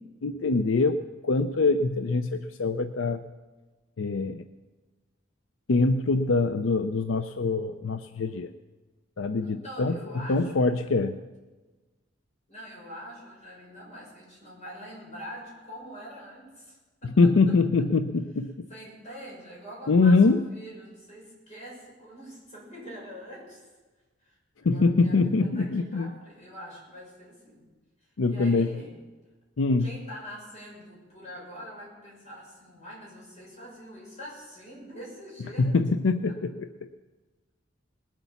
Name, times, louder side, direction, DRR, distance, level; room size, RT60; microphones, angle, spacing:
voice 1, 0.2-3.2 4.0-4.4 5.7-8.5 9.2-9.9 10.3-11.2 17.2-18.7 19.9-20.4 24.6-26.1 28.2-28.7 29.6-29.8 35.6-36.7, left 3 dB, 75° left, 10 dB, 0.5 m, -24 dB
voice 2, 9.4-10.6 12.5-17.5 18.7-23.7 24.2-27.6 28.0-29.0 29.8-35.7 36.3-36.4, equal, 35° left, -4 dB, 6.5 m, -44 dB
20.0 x 8.3 x 7.1 m, 1.3 s
head